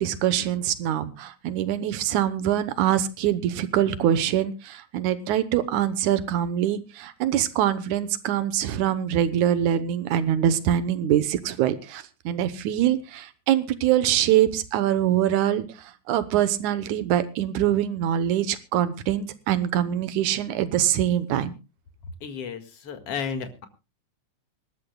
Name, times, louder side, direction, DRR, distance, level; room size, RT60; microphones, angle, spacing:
voice 1, 0.0-21.5, right 11 dB, 90° right, 13 dB, 2.4 m, -24 dB
voice 2, 22.2-23.7, left 6 dB, 55° left, 7 dB, 2.8 m, -33 dB
25.5 x 13.0 x 2.2 m, 0.29 s
omnidirectional pair, 3.3 m